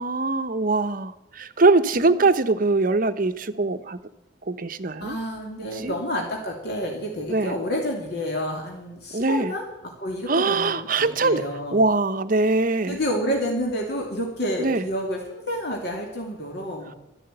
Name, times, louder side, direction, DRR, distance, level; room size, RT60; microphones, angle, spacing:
voice 1, 0.0-4.0 4.5-5.2 5.8-5.9 7.3-7.6 9.1-9.5 10.3-11.4 11.7-13.0 14.6-14.8, right 3 dB, 50° right, 11 dB, 0.8 m, -22 dB
voice 2, 5.0-11.8 12.9-16.9, equal, 60° left, 0 dB, 2.7 m, -29 dB
12.5 x 11.0 x 8.9 m, 0.89 s
head